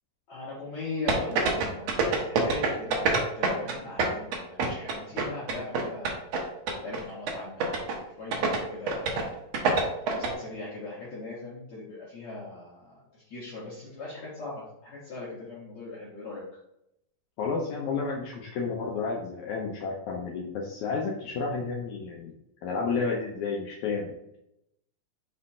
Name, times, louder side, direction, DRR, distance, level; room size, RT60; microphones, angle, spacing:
voice 1, 0.3-6.2 6.8-7.8 8.2-9.4 10.1-13.0 13.3-16.4, left 3 dB, 55° left, -7 dB, 2.3 m, -39 dB
sound 1, 1.1-3.7 4.0-6.4 6.7-7.0 7.3-7.4 7.6-8.0 8.3-8.6 8.9-9.2 9.5-10.3, right 4 dB, 65° right, 1.8 m, -25 dB
voice 2, 17.4-22.3 22.6-24.4, left 4 dB, 80° left, 0 dB, 1.7 m, -31 dB
5.7 x 4.3 x 4.2 m, 0.79 s
omnidirectional pair, 4.2 m